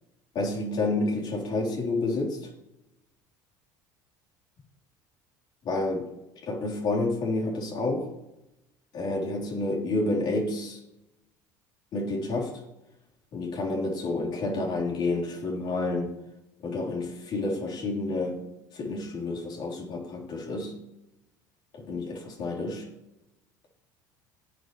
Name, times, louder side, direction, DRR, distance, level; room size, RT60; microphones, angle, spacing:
voice 1, 0.3-2.5 5.6-6.1 6.5-8.1 8.9-10.8 11.9-12.5 13.3-16.1 16.6-18.4 18.7-20.7 21.8-22.9, left 2 dB, 50° left, -2 dB, 3.8 m, -29 dB
18.0 x 6.5 x 3.2 m, 0.92 s
supercardioid pair, 90°, 9 cm